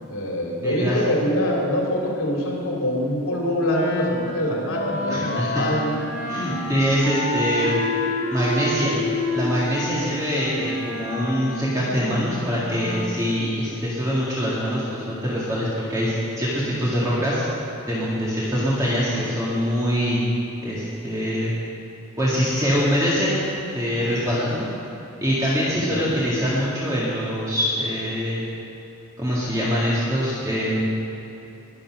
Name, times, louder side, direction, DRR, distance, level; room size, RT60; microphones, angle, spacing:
voice 1, 0.1-6.0 6.5-6.6 9.9-10.0 24.4-24.6 25.7-26.1, equal, 80° left, -2 dB, 2.9 m, -25 dB
voice 2, 0.6-1.0 5.1-5.6 6.3-7.8 8.3-9.0 9.3-17.4 17.9-20.2 20.6-21.5 22.2-23.4 23.7-24.7 25.2-28.4 29.2-30.8, equal, 15° right, -8 dB, 1.9 m, -24 dB
Wind instrument woodwind instrument, 3.7-13.2, left 1 dB, 55° left, 1.9 m, -29 dB
21.0 x 7.1 x 6.1 m, 2.9 s
head